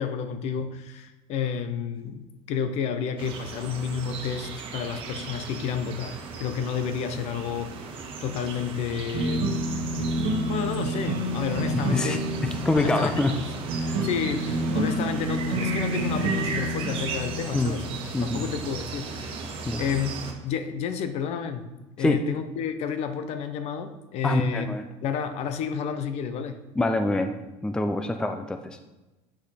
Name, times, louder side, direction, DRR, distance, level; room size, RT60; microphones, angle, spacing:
voice 1, 0.0-10.1 10.5-12.3 12.8-13.6 14.0-20.1 20.4-21.7 22.0-24.7 25.0-26.6, left 7 dB, 55° left, 9 dB, 0.7 m, -31 dB
sound 1, 3.2-20.3, right 4 dB, 40° right, 1.3 m, -36 dB
sound 2, 9.1-18.4, right 1 dB, 55° right, 1.7 m, -29 dB
voice 2, 12.4-13.4 13.9-14.0 17.5-17.7 18.1-18.4 19.7-19.8 22.0-22.2 24.2-24.8 26.8-27.3 27.6-28.8, left 2 dB, 5° left, 7 dB, 0.4 m, -25 dB
8.4 x 5.1 x 4.2 m, 1.1 s
cardioid pair, 135°, 13 cm